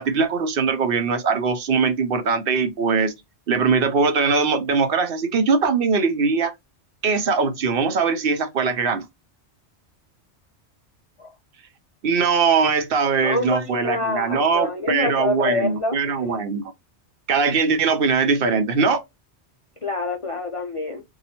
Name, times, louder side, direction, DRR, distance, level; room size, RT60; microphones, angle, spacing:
voice 1, 0.0-3.1 3.5-6.5 7.0-9.0 12.0-16.6 17.3-19.0, right 5 dB, 60° right, 0.8 m, -21 dB
voice 2, 13.2-16.0 19.8-21.0, left 3 dB, 45° left, 0.4 m, -26 dB
2.8 x 2.3 x 4.1 m
omnidirectional pair, 1.2 m